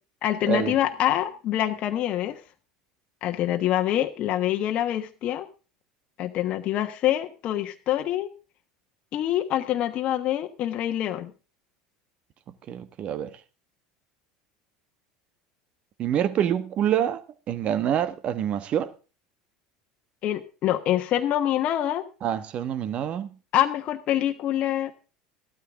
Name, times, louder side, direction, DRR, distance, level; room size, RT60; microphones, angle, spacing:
voice 1, 0.2-2.4 3.2-5.5 6.2-8.3 9.1-11.3 20.2-22.1 23.5-24.9, left 12 dB, 45° left, 1.2 m, -25 dB
voice 2, 12.7-13.3 16.0-17.2 17.5-18.9 22.2-23.3, right 9 dB, 45° right, 1.3 m, -26 dB
14.5 x 12.5 x 3.6 m
figure-of-eight pair, 70°, 3 cm